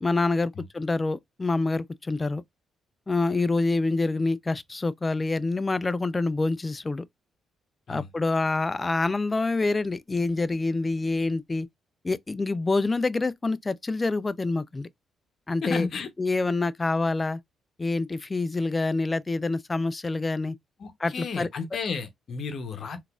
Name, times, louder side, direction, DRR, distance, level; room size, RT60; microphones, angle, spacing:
voice 1, 0.0-2.4 3.1-7.0 7.9-11.7 12.0-14.9 15.5-15.9 16.2-17.4 17.8-20.6 21.0-21.5, left 3 dB, 20° left, 0.3 m, -26 dB
voice 2, 15.6-16.1 20.8-23.1, left 5 dB, 55° left, 0.7 m, -33 dB
3.9 x 2.4 x 2.3 m
cardioid pair, 90°, 0 cm